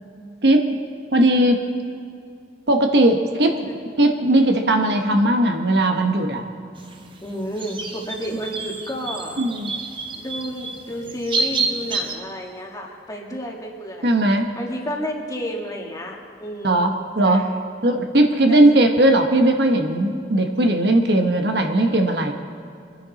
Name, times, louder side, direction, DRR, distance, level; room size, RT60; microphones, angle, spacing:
voice 1, 1.1-1.6 2.7-3.7 4.0-6.4 9.4-9.7 14.0-14.5 16.6-16.9 17.1-17.5 17.8-22.3, right 1 dB, 65° right, 4 dB, 1.1 m, -18 dB
sound 1, 6.8-12.2, right 3 dB, 30° right, 1.1 m, -29 dB
voice 2, 7.2-9.4 10.1-14.1 14.6-16.9 17.2-17.5 18.5-18.8, equal, 20° left, 0 dB, 1.7 m, -31 dB
24.5 x 10.5 x 4.1 m, 2.4 s
head